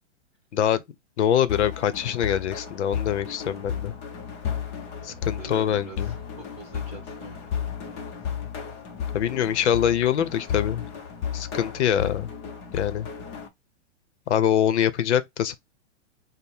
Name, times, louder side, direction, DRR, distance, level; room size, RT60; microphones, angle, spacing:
voice 1, 1.2-3.9 5.0-6.1 9.1-10.8 11.3-12.3 12.7-13.1 14.3-15.5, left 10 dB, 65° left, 0.8 m, -24 dB
sound 1, 1.5-13.5, left 7 dB, 25° left, 0.7 m, -34 dB
voice 2, 5.1-6.1 6.5-8.1, right 5 dB, 20° right, 1.1 m, -45 dB
5.1 x 2.1 x 4.3 m
hypercardioid pair, 160°, 36 cm